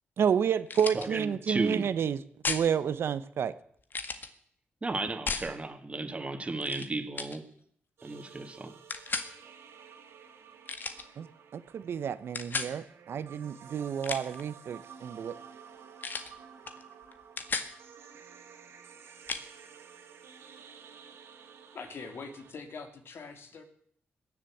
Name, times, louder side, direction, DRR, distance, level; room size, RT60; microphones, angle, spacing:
voice 1, 0.2-2.2 2.5-3.5 11.2-11.3 11.5-15.3, right 7 dB, 75° right, 14 dB, 1.0 m, -30 dB
sound 1, 0.7-1.1 2.4-2.7 3.9-4.3 5.3-5.5 6.6-6.9 7.2-7.4 8.9-9.3 10.7-11.0 12.3-12.7 13.9-14.4 16.0-16.3 16.7-16.8 17.1-17.7 19.3-19.4, left 4 dB, 50° left, 1.8 m, -34 dB
voice 2, 0.9-1.9 4.8-7.4 8.0-8.7, right 3 dB, 30° right, 7 dB, 2.3 m, -34 dB
sound 2, 8.0-22.5, right 7 dB, 90° right, 3.4 m, -52 dB
voice 3, 21.7-23.6, left 4 dB, 65° left, 7 dB, 2.8 m, -43 dB
20.5 x 7.5 x 8.7 m, 0.65 s
cardioid pair, 70°, 4 cm